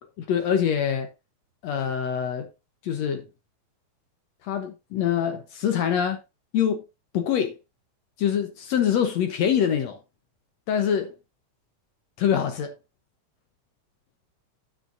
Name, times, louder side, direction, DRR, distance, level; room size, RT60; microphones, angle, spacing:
voice 1, 0.2-1.1 1.6-2.5 2.8-3.3 4.4-6.2 6.5-6.8 7.1-7.6 8.2-10.0 10.7-11.1 12.2-12.7, left 8 dB, 65° left, 2.0 m, -24 dB
10.0 x 9.0 x 2.6 m
omnidirectional pair, 3.5 m